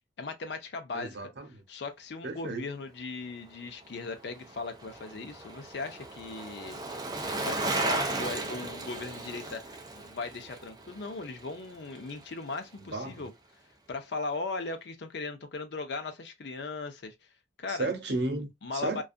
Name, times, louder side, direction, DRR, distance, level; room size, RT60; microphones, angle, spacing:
voice 1, 0.2-1.2 1.7-6.8 7.3-9.6 10.0-13.3 13.9-17.1 17.6-17.9 18.6-19.0, left 3 dB, 70° left, 0.5 m, -38 dB
voice 2, 0.9-1.6 2.2-2.7 12.8-13.3 17.7-19.0, right 2 dB, 70° right, 0.8 m, -34 dB
Bicycle, 3.8-12.3 12.6-12.7, right 2 dB, 20° right, 0.4 m, -36 dB
2.5 x 2.3 x 2.4 m
head